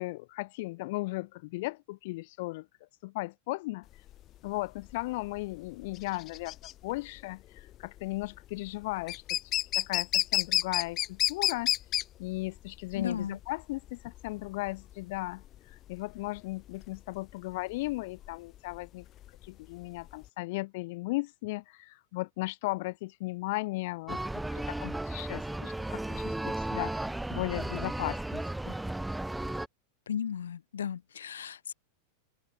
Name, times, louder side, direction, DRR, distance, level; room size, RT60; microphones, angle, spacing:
voice 1, 0.0-2.7 3.0-3.9 4.4-6.6 6.8-9.2 9.7-11.7 12.2-15.4 15.9-19.0 19.4-24.2 24.5-26.9 27.3-28.8, left 22 dB, 50° left, 4.2 m, -36 dB
sound 1, 3.9-20.3, left 13 dB, 35° left, 6.9 m, -32 dB
voice 2, 12.9-13.4 30.1-31.7, left 8 dB, 65° left, 2.6 m, -35 dB
sound 2, 24.1-29.7, right 1 dB, 5° right, 7.0 m, -34 dB
open air
figure-of-eight pair, 90°, 0 cm